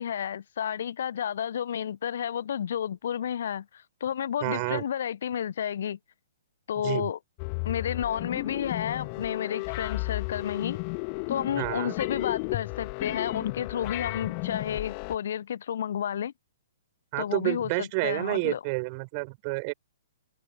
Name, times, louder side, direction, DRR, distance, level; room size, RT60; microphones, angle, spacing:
voice 1, 0.0-6.0 6.7-7.2 7.6-10.8 11.3-16.3 17.2-18.6, left 9 dB, 55° left, 1.0 m, -31 dB
voice 2, 4.4-4.8 6.8-7.1 11.6-11.9 17.1-19.7, right 30 dB, 35° right, 6.1 m, -29 dB
sound 1, 7.4-15.2, left 37 dB, 35° left, 1.8 m, -33 dB
figure-of-eight pair, 115°, 0 cm